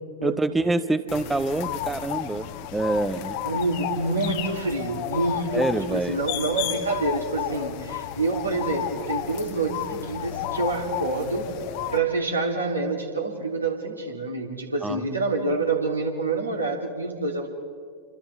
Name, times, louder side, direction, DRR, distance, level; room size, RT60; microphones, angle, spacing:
voice 1, 0.2-2.5 2.7-3.4 5.5-6.2 14.8-15.0, right 2 dB, 10° right, 12 dB, 0.7 m, -26 dB
sound 1, 1.1-12.0, left 12 dB, 45° left, 1.2 m, -33 dB
voice 2, 3.4-11.6 11.9-17.5, right 3 dB, 80° right, 0 dB, 3.1 m, -27 dB
29.5 x 25.5 x 3.5 m, 2.1 s
figure-of-eight pair, 90°, 0 cm